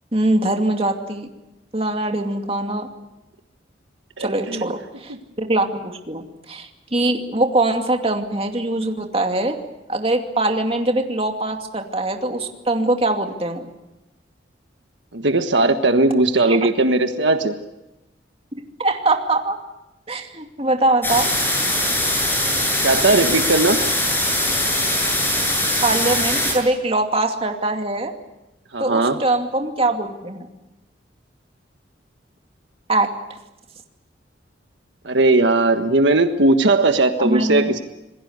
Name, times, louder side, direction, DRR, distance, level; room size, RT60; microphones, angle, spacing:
voice 1, 0.1-1.3 1.7-2.9 4.2-9.6 9.9-13.7 16.4-16.6 18.8-19.6 20.1-21.3 25.8-28.1 28.8-30.5 32.9-33.2 37.2-37.8, right 2 dB, 30° right, 4 dB, 2.5 m, -22 dB
voice 2, 4.2-4.6 15.1-17.5 22.8-23.8 28.7-29.2 35.0-37.8, right 2 dB, 75° right, 7 dB, 1.5 m, -18 dB
sound 1, 21.0-26.5, left 1 dB, 10° left, 7.1 m, -21 dB
27.5 x 21.0 x 8.1 m, 0.98 s
head